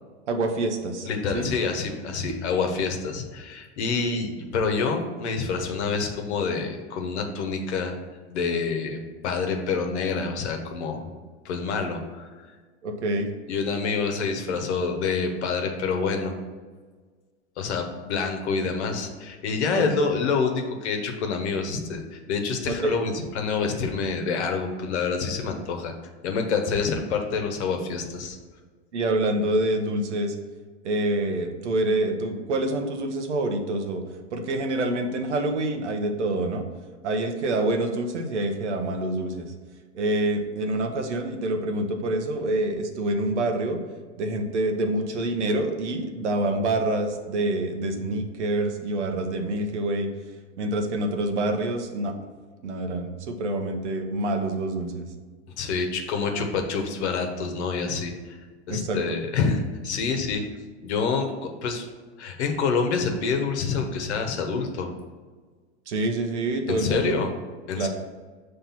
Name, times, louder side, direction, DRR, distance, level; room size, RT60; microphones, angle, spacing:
voice 1, 0.3-1.5 12.8-13.3 19.7-20.1 22.7-22.9 28.9-30.3 30.8-34.0 34.3-36.6 37.0-39.5 39.9-43.8 44.1-50.1 50.6-52.1 52.6-55.0 58.7-59.0 65.9-67.2 67.8-67.9, right 2 dB, 85° right, 5 dB, 1.0 m, -26 dB
voice 2, 1.0-7.9 8.3-11.1 11.4-12.3 13.5-16.3 17.6-25.9 26.2-28.4 55.6-58.4 58.7-60.4 60.8-61.9 62.2-64.9 66.7-67.3 67.7-67.9, left 5 dB, 75° left, 4 dB, 1.1 m, -27 dB
5.8 x 3.3 x 5.7 m, 1.4 s
hypercardioid pair, 115°, 34 cm